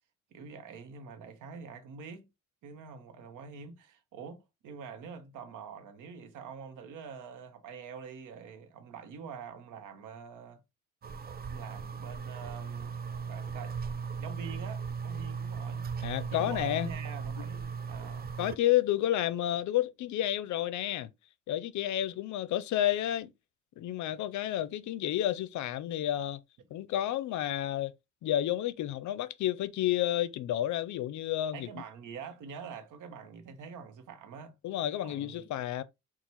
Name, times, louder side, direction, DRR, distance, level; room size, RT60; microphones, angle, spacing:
voice 1, 0.3-2.3 2.6-10.6 11.5-13.0 13.3-13.8 14.2-15.9 16.3-18.3 31.5-34.5 35.0-35.5, right 6 dB, 80° right, 1.0 m, -45 dB
sound 1, 11.0-18.6, right 6 dB, 30° right, 0.4 m, -37 dB
voice 2, 16.0-16.9 18.4-21.1 21.5-23.3 23.8-26.4 26.7-27.9 28.2-31.7 34.6-35.8, left 12 dB, 70° left, 0.5 m, -30 dB
5.5 x 2.4 x 3.0 m
cardioid pair, 90°, 30 cm